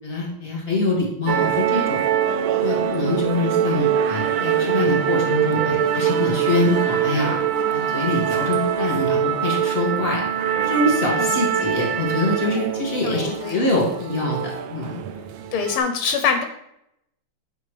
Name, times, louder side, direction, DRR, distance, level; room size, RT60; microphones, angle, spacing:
voice 1, 0.0-2.0 2.6-7.4 7.7-10.2 10.6-15.0, left 2 dB, 25° left, -3 dB, 2.5 m, -24 dB
sound 1, 1.3-15.8, right 9 dB, 75° right, 1.3 m, -23 dB
voice 2, 13.0-13.6 15.5-16.4, left 6 dB, 85° left, 6 dB, 1.6 m, -24 dB
8.9 x 5.0 x 3.3 m, 0.79 s
omnidirectional pair, 2.4 m